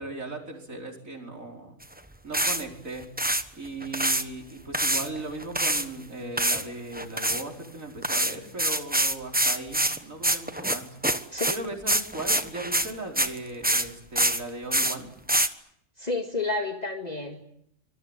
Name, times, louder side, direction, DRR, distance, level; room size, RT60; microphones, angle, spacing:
voice 1, 0.0-1.8 2.2-3.1 3.6-11.0 11.5-15.1, right 2 dB, 90° right, 1 dB, 5.2 m, -37 dB
sound 1, 1.8-1.9 2.3-2.6 3.0-3.4 3.8-4.2 4.7-5.9 6.4-6.7 6.9-7.4 8.0-13.4 13.6-13.9 14.2-14.4 14.7-15.0 15.3-15.5, right 1 dB, 5° right, 1.1 m, -25 dB
voice 2, 16.0-17.4, left 3 dB, 30° left, 3 dB, 2.3 m, -30 dB
26.0 x 21.0 x 9.1 m, 0.73 s
omnidirectional pair, 1.4 m